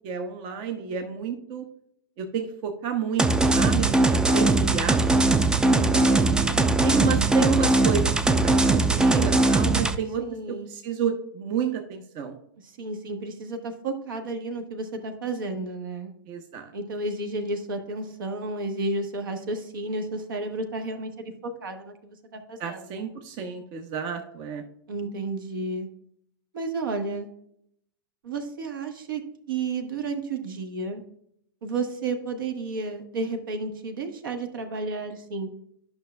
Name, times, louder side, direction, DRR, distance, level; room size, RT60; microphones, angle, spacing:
voice 1, 0.0-1.7 2.2-3.3 3.5-5.0 5.6-10.2 10.5-12.4 16.3-16.7 22.6-24.6, right 7 dB, 40° right, 4 dB, 0.9 m, -30 dB
sound 1, 3.2-10.0, right 2 dB, 5° right, 0.4 m, -20 dB
voice 2, 5.6-6.8 10.2-10.7 12.6-16.1 16.7-23.0 24.9-25.9 26.5-27.3 28.2-29.2 29.5-31.0 31.6-35.5, right 3 dB, 70° right, 6 dB, 1.3 m, -32 dB
11.0 x 5.8 x 2.2 m, 0.72 s
hypercardioid pair, 110°, 12 cm